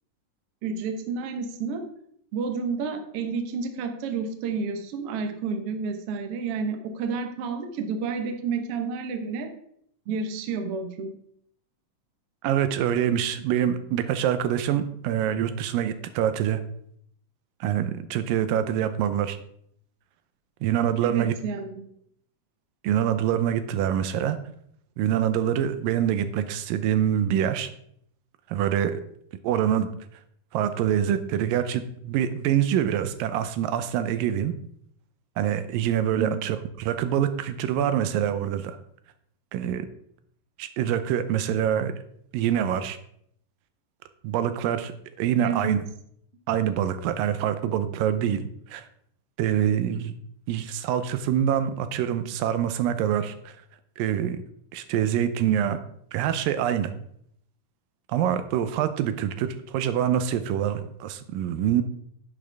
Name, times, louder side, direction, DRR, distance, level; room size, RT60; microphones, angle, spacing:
voice 1, 0.6-1.8 2.3-9.5 10.1-11.1 21.0-21.9 36.2-36.3 45.4-45.7, right 5 dB, 65° right, 6 dB, 1.5 m, -30 dB
voice 2, 12.4-16.6 17.6-19.4 20.6-21.3 22.8-24.4 25.0-27.7 28.5-29.0 29.4-29.9 30.5-34.5 35.4-38.8 39.5-39.9 40.6-41.9 42.3-43.0 44.2-44.9 45.2-45.8 46.5-48.9 49.4-50.1 50.5-53.6 54.0-54.4 54.7-55.8 56.1-56.9 58.1-61.8, right 10 dB, 80° right, 11 dB, 2.4 m, -25 dB
10.5 x 8.8 x 3.4 m, 0.68 s
omnidirectional pair, 4.0 m